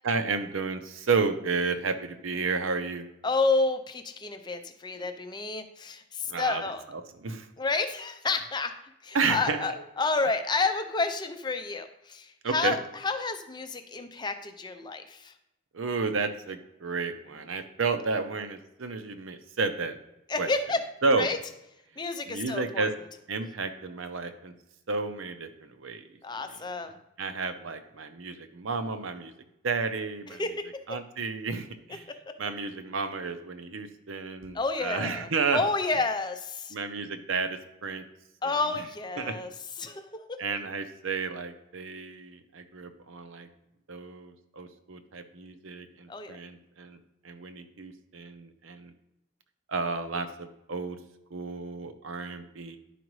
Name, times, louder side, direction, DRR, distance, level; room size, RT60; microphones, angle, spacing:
voice 1, 0.0-3.1 6.3-7.5 9.1-9.8 12.4-12.8 15.7-20.0 20.4-20.5 21.0-21.3 22.3-22.9 23.3-24.5 24.9-26.0 27.2-29.3 29.6-30.4 30.9-32.1 32.4-35.6 36.7-38.1 38.4-38.9 39.2-39.4 39.8-39.9 40.4-43.5 43.9-47.0 47.2-48.9 49.7-51.0 51.3-52.8, right 4 dB, 80° right, 9 dB, 0.7 m, -32 dB
voice 2, 3.2-6.8 7.6-8.7 9.0-12.8 13.0-15.3 20.3-20.8 21.2-21.4 22.0-22.9 26.2-27.0 30.3-30.7 32.3-32.4 34.5-36.7 38.4-39.5 39.8-40.4 46.1-46.4, left 3 dB, 20° left, 8 dB, 0.5 m, -30 dB
11.0 x 4.9 x 3.2 m, 0.89 s
head